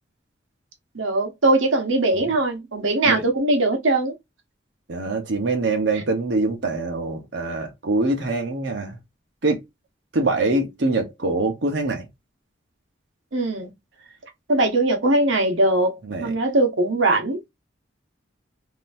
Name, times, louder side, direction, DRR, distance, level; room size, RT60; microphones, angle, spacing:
voice 1, 0.9-4.1 13.3-13.7 14.5-17.4, right 2 dB, 90° right, 1.0 m, -21 dB
voice 2, 4.9-9.0 9.4-9.6 10.1-12.1 16.1-16.3, right 2 dB, 65° right, 0.9 m, -24 dB
3.7 x 2.8 x 2.6 m
head